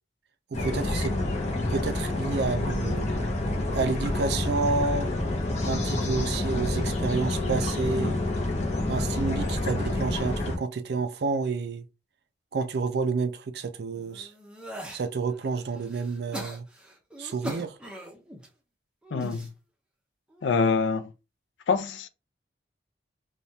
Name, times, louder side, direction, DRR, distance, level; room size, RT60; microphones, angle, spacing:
sound 1, 0.5-10.6, left 2 dB, 35° left, 0.6 m, -28 dB
voice 1, 0.5-1.2 1.7-3.1 3.7-5.1 5.6-8.2 8.9-11.8 12.5-14.3 14.9-16.7 17.2-17.8, right 4 dB, 60° right, 0.4 m, -29 dB
sound 2, 13.9-15.0 15.6-18.5 19.0-19.5 20.3-20.7, equal, 5° right, 0.6 m, -41 dB
voice 2, 19.1-19.5 20.4-21.1 21.7-22.1, left 5 dB, 85° left, 0.4 m, -25 dB
3.2 x 2.2 x 2.7 m
head